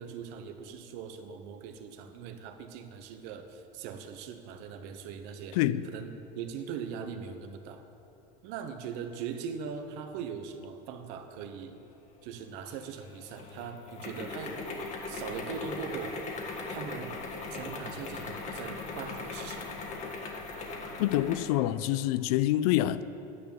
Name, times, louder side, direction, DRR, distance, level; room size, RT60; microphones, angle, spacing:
voice 1, 0.0-7.8 8.4-11.8 12.2-14.6 15.1-16.2 16.7-17.2 17.5-19.7, right 7 dB, 65° right, 1.0 m, -41 dB
voice 2, 5.5-5.9 21.0-23.0, left 14 dB, 80° left, 0.5 m, -26 dB
sound 1, 12.7-21.5, left 3 dB, 40° left, 1.6 m, -39 dB
9.8 x 8.0 x 7.1 m
supercardioid pair, 135°, 19 cm